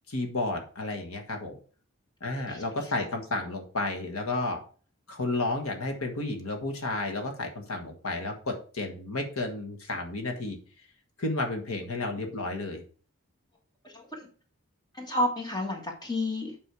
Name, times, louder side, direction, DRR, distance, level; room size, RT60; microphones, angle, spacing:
voice 1, 0.1-1.6 2.2-4.6 5.1-10.6 11.2-12.8, left 2 dB, 75° left, 4 dB, 1.5 m, -32 dB
voice 2, 13.8-14.3 14.9-16.6, left 1 dB, 20° left, 1 dB, 1.6 m, -31 dB
8.4 x 5.4 x 4.8 m, 0.41 s
head